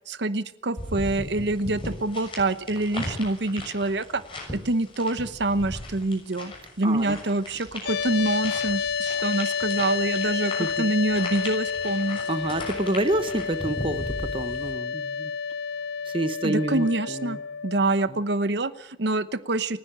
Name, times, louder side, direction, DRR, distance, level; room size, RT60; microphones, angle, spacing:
voice 1, 0.1-4.2 4.5-12.2 16.4-17.4 17.6-19.8, right 2 dB, 65° right, 13 dB, 0.9 m, -26 dB
sound 1, 0.8-14.7, left 1 dB, 30° left, 6.5 m, -38 dB
voice 2, 6.8-7.2 10.6-10.7 12.3-15.3 16.0-17.4 18.1-18.2, right 1 dB, 30° right, 12 dB, 1.0 m, -28 dB
sound 2, 7.9-17.9, left 6 dB, 60° left, 0.7 m, -30 dB
29.0 x 10.5 x 8.9 m, 0.78 s
head